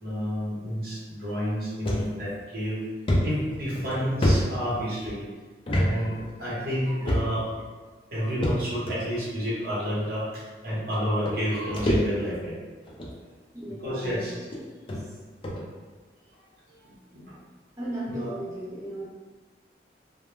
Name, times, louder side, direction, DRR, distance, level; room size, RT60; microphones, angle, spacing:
voice 1, 0.0-2.8 3.2-5.3 5.7-7.4 8.1-12.6 13.7-14.3 16.8-17.2 18.0-18.3, equal, 55° right, -7 dB, 0.9 m, -30 dB
sound 1, 1.9-2.0 2.5-2.6 3.1-5.1 5.7-5.9 6.2-6.3 7.1-7.5 8.4-9.0 9.8-9.9 10.9-11.0 11.3-12.4 12.9-13.2 13.9-14.0 14.5-14.6 14.9-15.0 15.4-15.6, equal, 30° left, 0.4 m, -26 dB
voice 2, 13.5-14.3 17.8-19.1, right 1 dB, 20° right, -8 dB, 0.6 m, -35 dB
2.2 x 2.1 x 3.1 m, 1.4 s
head